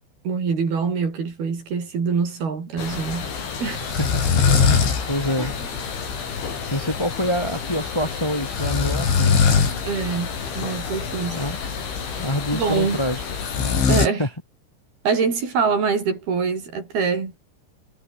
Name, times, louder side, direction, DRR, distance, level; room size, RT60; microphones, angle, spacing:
voice 1, 0.3-3.3 3.6-3.8 5.4-5.5 9.8-11.5 12.5-13.0 13.9-14.2 15.0-17.3, right 5 dB, 55° right, 7.2 m, -24 dB
sound 1, 2.8-14.1, left 6 dB, 85° left, 8.4 m, -24 dB
voice 2, 3.7-4.1 5.1-5.5 6.7-9.4 11.3-11.6 12.2-13.2 14.2-14.3, equal, 20° left, 0.7 m, -26 dB
omnidirectional pair, 5.2 m